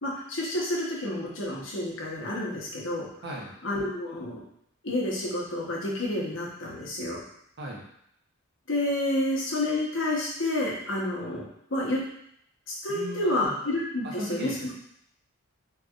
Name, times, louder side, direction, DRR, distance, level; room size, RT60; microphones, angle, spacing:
voice 1, 0.0-3.1 3.6-4.4 4.8-7.2 8.7-11.4 11.7-12.0 12.7-14.5, left 1 dB, 60° left, -4 dB, 1.0 m, -29 dB
voice 2, 3.2-3.5 7.6-7.8 12.9-13.6 14.0-14.7, right 1 dB, 50° right, -2 dB, 0.9 m, -37 dB
4.4 x 3.2 x 2.4 m, 0.73 s
head